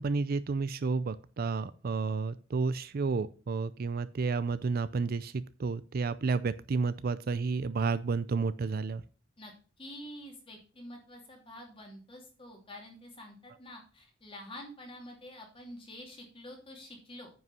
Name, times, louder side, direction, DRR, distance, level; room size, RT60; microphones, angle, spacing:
voice 1, 0.0-9.0, right 4 dB, 45° right, 15 dB, 0.4 m, -31 dB
voice 2, 9.8-17.3, left 1 dB, 25° left, 1 dB, 2.7 m, -47 dB
9.4 x 5.5 x 5.6 m, 0.37 s
head